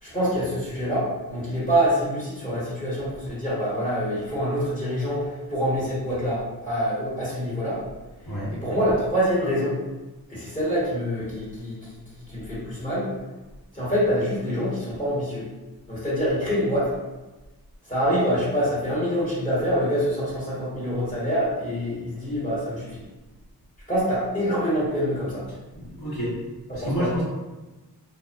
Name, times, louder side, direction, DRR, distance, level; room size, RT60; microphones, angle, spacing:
voice 1, 0.0-7.8 8.5-9.8 10.3-12.0 12.3-13.1 13.7-15.4 15.9-16.9 17.9-23.0 23.9-25.4 26.7-27.1, equal, 20° left, -10 dB, 1.1 m, -25 dB
voice 2, 8.2-8.6 25.7-26.3 26.7-27.2, equal, 75° left, -11 dB, 1.4 m, -28 dB
2.6 x 2.2 x 2.3 m, 1.1 s
wide cardioid pair, 120°, 38 cm